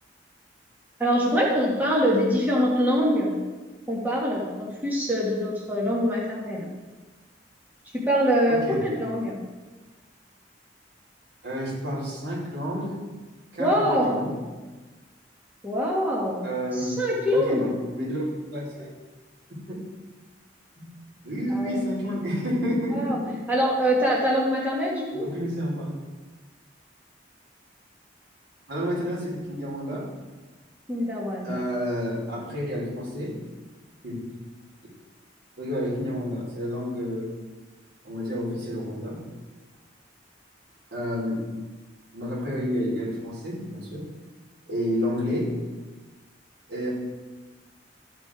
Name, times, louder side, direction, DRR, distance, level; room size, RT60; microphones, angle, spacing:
voice 1, 1.0-3.4 3.9-6.7 7.9-9.4 13.6-14.2 15.6-17.7 21.5-21.9 22.9-23.2 23.5-25.3 30.9-31.6, equal, 10° right, -5 dB, 2.0 m, -24 dB
voice 2, 8.5-8.8 11.4-13.0 13.5-14.3 16.4-17.0 17.3-18.9 19.6-19.8 20.8-20.9 21.2-23.3 25.1-26.0 28.7-30.1 31.4-33.4 34.0-34.2 35.6-37.3 38.0-39.2 40.9-41.5 42.1-44.1 44.7-45.6 46.7-46.9, equal, 60° right, -3 dB, 4.1 m, -30 dB
14.0 x 8.0 x 4.9 m, 1.3 s
head